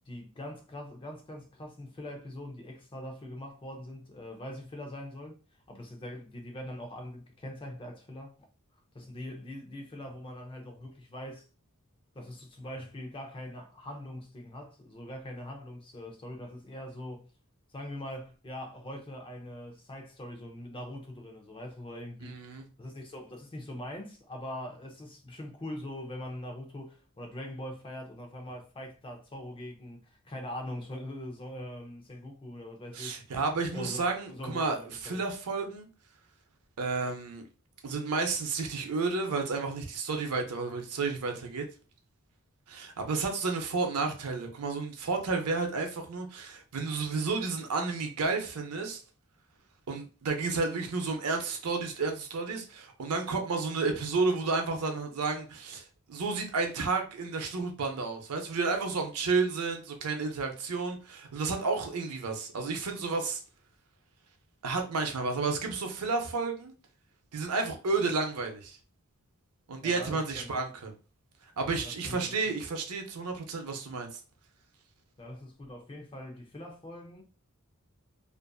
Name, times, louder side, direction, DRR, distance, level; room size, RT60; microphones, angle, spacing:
voice 1, 0.1-5.4 5.7-8.3 8.9-11.5 12.1-17.3 17.7-33.2 33.7-35.2 69.8-70.5 71.8-72.5 75.2-77.2, left 1 dB, 25° left, 0.5 m, -42 dB
voice 2, 22.2-22.7 32.9-35.9 36.8-37.4 37.8-41.7 42.7-49.0 49.9-63.4 64.6-66.7 67.3-68.8 69.7-70.9 71.6-74.1, right 4 dB, 90° right, 0.6 m, -31 dB
2.5 x 2.4 x 2.2 m
head